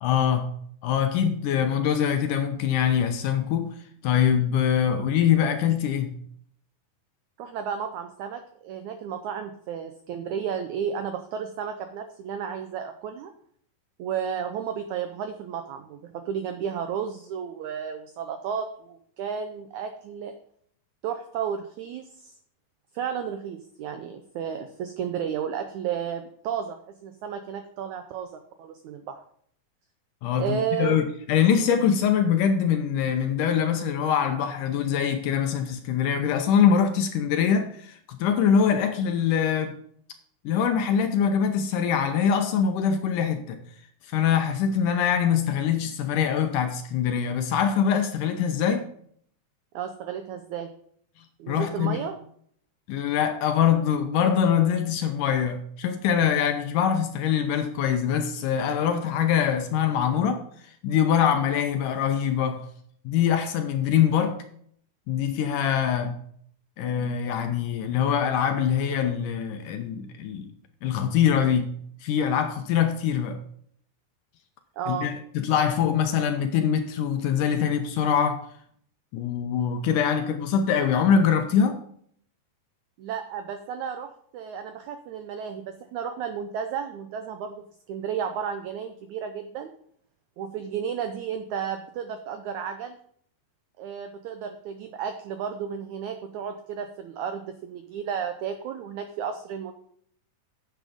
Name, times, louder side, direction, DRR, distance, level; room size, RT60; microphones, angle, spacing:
voice 1, 0.0-0.5 0.8-3.8 4.0-6.2 30.2-39.8 40.5-43.6 44.1-48.9 51.5-52.0 52.9-60.4 60.8-62.6 63.1-64.4 65.1-66.2 66.8-70.5 70.8-71.7 72.0-73.4 74.9-78.4 79.1-81.8, left 8 dB, 75° left, 2.1 m, -23 dB
voice 2, 7.4-13.3 14.0-20.3 21.0-22.3 22.9-26.8 27.0-29.2 30.4-31.0 49.7-50.7 51.4-52.2 74.8-75.1 83.0-89.7 90.4-93.0 93.8-99.7, right 7 dB, 90° right, 1.6 m, -33 dB
10.0 x 7.7 x 5.1 m
omnidirectional pair, 4.3 m